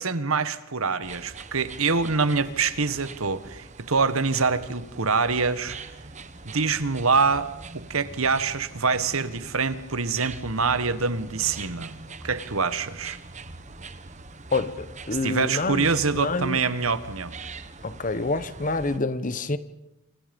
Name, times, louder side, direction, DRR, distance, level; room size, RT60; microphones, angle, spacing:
voice 1, 0.0-5.8 6.4-11.9 12.2-13.2 15.2-17.4, right 4 dB, 80° right, 1.5 m, -25 dB
sound 1, 1.0-19.0, right 3 dB, 35° right, 1.4 m, -43 dB
voice 2, 14.5-16.6 17.8-19.6, left 3 dB, 40° left, 1.2 m, -27 dB
28.0 x 27.5 x 5.4 m
head